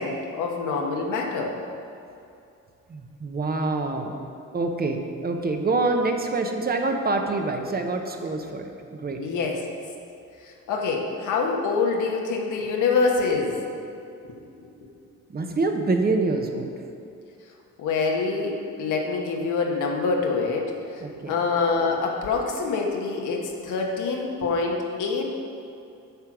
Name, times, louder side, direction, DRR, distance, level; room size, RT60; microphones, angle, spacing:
voice 1, 0.0-1.6 9.2-9.6 10.4-13.6 14.3-14.4 17.8-25.3, left 4 dB, 80° left, 1 dB, 1.2 m, -26 dB
voice 2, 2.9-4.2 4.5-9.2 15.3-16.7 21.0-21.3, right 3 dB, 30° right, 4 dB, 0.8 m, -26 dB
8.4 x 4.5 x 6.1 m, 2.6 s
cardioid pair, 90°, 30 cm